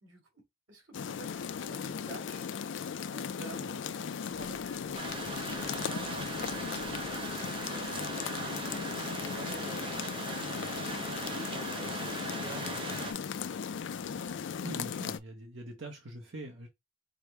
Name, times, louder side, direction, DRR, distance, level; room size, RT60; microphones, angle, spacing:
voice 1, 0.0-2.5 3.1-7.2 7.7-13.4, equal, 85° right, 2.1 m, -49 dB
sound 1, 0.9-15.2, left 7 dB, 65° left, 0.4 m, -37 dB
sound 2, 4.3-8.3, left 2 dB, 25° left, 0.7 m, -57 dB
sound 3, 4.9-13.1, right 3 dB, 25° right, 0.5 m, -39 dB
voice 2, 14.3-16.7, right 1 dB, 70° right, 0.8 m, -44 dB
4.8 x 2.1 x 4.5 m
head